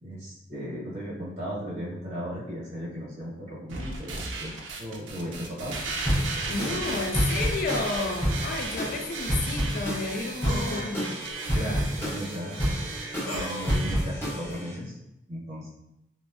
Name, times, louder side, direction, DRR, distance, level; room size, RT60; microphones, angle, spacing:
voice 1, 0.0-4.5 4.8-5.7 6.7-7.0 11.5-13.0 13.3-15.0 15.3-15.7, equal, 35° right, -7 dB, 1.2 m, -36 dB
sound 1, 3.7-13.9, right 3 dB, 70° right, 0.4 m, -36 dB
sound 2, 6.0-14.7, equal, 15° left, 0.8 m, -30 dB
voice 2, 6.5-11.1, left 3 dB, 45° left, 1 dB, 0.3 m, -32 dB
sound 3, 8.1-8.2 10.5-10.9 13.3-13.8, left 1 dB, 90° left, 0.7 m, -34 dB
3.3 x 2.1 x 2.5 m, 0.83 s
head